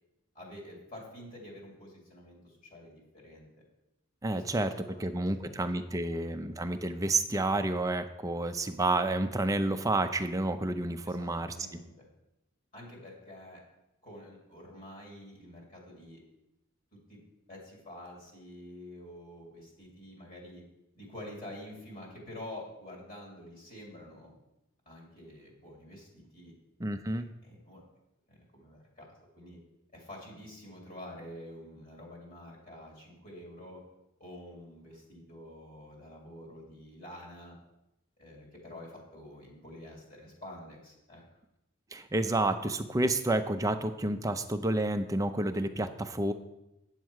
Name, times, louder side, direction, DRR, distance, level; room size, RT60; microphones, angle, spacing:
voice 1, 0.3-3.5 4.3-6.4 11.0-12.1 12.7-13.6 14.0-16.2 17.1-17.2 17.5-20.6 20.9-24.3 24.9-26.5 27.2-27.8 28.3-29.6 29.9-33.8 34.2-37.6 38.2-41.2, left 1 dB, 40° left, -2 dB, 2.4 m, -48 dB
voice 2, 4.2-4.7 5.0-11.5 26.8-27.3 41.9-46.3, right 2 dB, 15° right, 8 dB, 0.5 m, -30 dB
9.3 x 7.3 x 4.7 m, 0.92 s
head